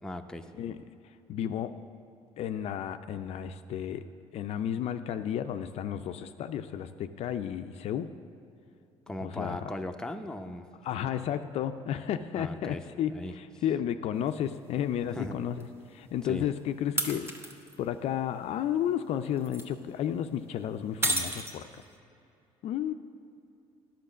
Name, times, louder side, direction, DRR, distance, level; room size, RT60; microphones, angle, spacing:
voice 1, 0.0-0.5 9.1-10.6 12.3-12.8 13.1-13.3 15.1-15.3 16.3-16.4, left 1 dB, 5° left, 5 dB, 0.7 m, -37 dB
voice 2, 1.3-1.7 2.4-4.1 4.3-8.1 9.2-9.7 10.8-17.5 17.8-21.7 22.6-22.9, left 10 dB, 65° left, 9 dB, 0.4 m, -32 dB
sound 1, 14.3-14.4 15.6-15.7 17.0-17.8 19.2-19.7 21.0-22.0, right 1 dB, 20° right, 1.2 m, -32 dB
10.0 x 5.8 x 7.2 m, 2.7 s
supercardioid pair, 80°, 12 cm